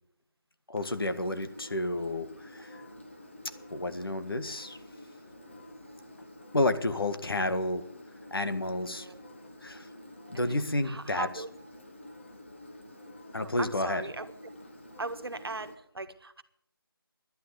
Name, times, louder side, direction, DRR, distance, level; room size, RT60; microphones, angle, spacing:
voice 1, 0.7-2.8 3.7-4.8 6.5-7.8 8.3-9.1 9.6-9.9 10.3-11.3 13.3-14.0, left 2 dB, 70° left, 10 dB, 1.7 m, -30 dB
Engine, 0.8-15.8, left 1 dB, 30° left, 1.7 m, -49 dB
voice 2, 8.9-9.2 10.3-10.5 10.8-11.5 13.4-14.3 15.0-16.4, right 3 dB, 80° right, 10 dB, 1.4 m, -39 dB
11.5 x 9.5 x 9.6 m, 0.71 s
figure-of-eight pair, 180°, 13 cm